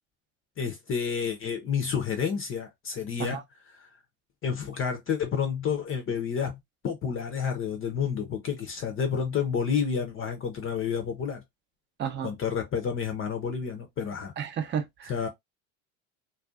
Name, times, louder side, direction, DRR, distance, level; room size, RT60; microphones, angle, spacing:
voice 1, 0.6-3.4 3.7-3.9 4.4-6.6 6.8-11.4 12.2-14.3 15.1-15.3, left 7 dB, 30° left, 0.6 m, -30 dB
voice 2, 12.0-12.3 14.4-15.3, right 8 dB, 30° right, 0.6 m, -32 dB
2.5 x 2.3 x 2.3 m
hypercardioid pair, 90°, 40 cm